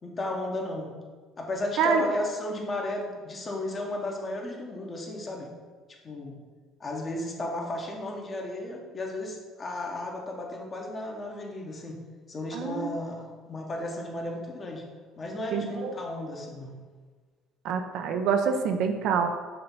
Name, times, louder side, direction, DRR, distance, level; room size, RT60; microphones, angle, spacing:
voice 1, 0.0-0.9 1.4-5.5 6.0-6.4 6.8-12.0 12.3-14.8 15.2-16.7, left 1 dB, 35° left, 0 dB, 1.3 m, -34 dB
voice 2, 12.5-12.9 15.5-15.9 17.6-19.3, right 6 dB, 70° right, 6 dB, 0.6 m, -26 dB
6.8 x 2.9 x 5.5 m, 1.5 s
supercardioid pair, 80°, 0 cm